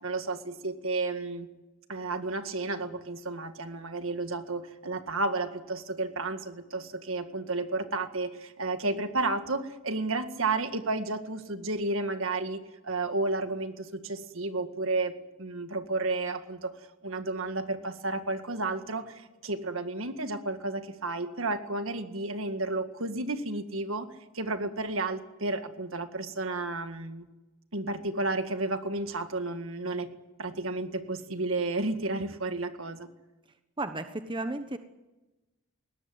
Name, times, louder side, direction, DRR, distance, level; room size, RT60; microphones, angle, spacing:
voice 1, 0.0-1.5 1.9-16.7 17.0-24.1 24.3-27.3 27.7-30.1 30.4-33.1, right 2 dB, 65° right, 8 dB, 2.0 m, -32 dB
voice 2, 33.8-34.8, right 2 dB, 20° right, 8 dB, 1.1 m, -33 dB
21.5 x 18.0 x 9.5 m, 1.1 s
head